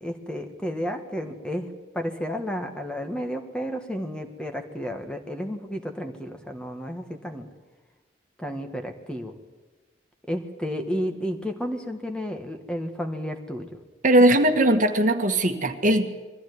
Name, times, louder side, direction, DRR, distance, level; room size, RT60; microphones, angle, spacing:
voice 1, 0.0-7.5 8.4-9.3 10.3-13.7, equal, 5° left, 4 dB, 1.7 m, -32 dB
voice 2, 14.0-16.1, right 1 dB, 45° right, 5 dB, 1.7 m, -19 dB
23.0 x 15.5 x 9.6 m, 1.3 s
head